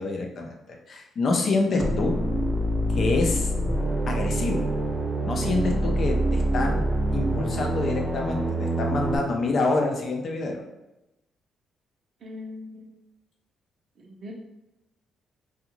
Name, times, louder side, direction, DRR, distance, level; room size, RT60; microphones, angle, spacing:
voice 1, 0.0-2.1 2.9-3.5 4.1-4.6 5.2-6.8 7.1-10.6, left 3 dB, 50° left, 1 dB, 0.5 m, -27 dB
sound 1, 1.8-9.2, right 1 dB, 15° right, 0.5 m, -26 dB
voice 2, 12.2-13.0 14.0-14.3, left 2 dB, 55° right, 0 dB, 0.6 m, -40 dB
2.4 x 2.4 x 2.9 m, 0.94 s
cardioid pair, 90°, 0 cm